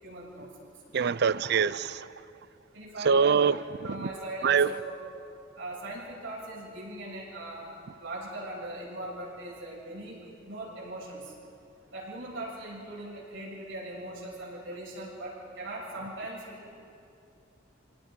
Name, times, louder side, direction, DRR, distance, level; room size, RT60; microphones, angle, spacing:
voice 1, 0.0-0.8 2.7-3.4 3.8-4.9 5.6-11.3 11.9-16.7, right 1 dB, 90° right, 7.1 m, -40 dB
voice 2, 0.9-2.1 3.0-3.6 4.0-4.1 4.4-4.7, right 6 dB, 60° right, 0.5 m, -23 dB
27.5 x 18.5 x 5.3 m
head